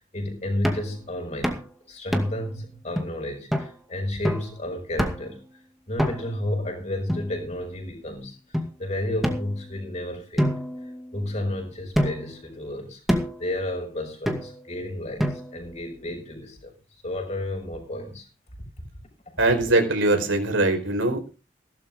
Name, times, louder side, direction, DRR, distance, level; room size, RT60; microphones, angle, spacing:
voice 1, 0.0-1.6 1.9-5.6 5.9-16.7 17.0-18.3 19.3-19.4, left 1 dB, 35° left, 6.6 m, -32 dB
sound 1, 0.6-0.9 1.4-1.7 2.1-2.5 3.0-3.1 3.5-3.7 4.2-4.5 5.0-5.3 6.0-6.4 7.1-7.8 8.5-8.7 9.2-9.9 10.4-11.4 11.9-12.4 13.1-13.5 14.3-14.7 15.2-15.7, equal, ahead, 2.2 m, -27 dB
voice 2, 19.4-21.3, right 2 dB, 80° right, 4.9 m, -22 dB
17.0 x 12.5 x 3.8 m
head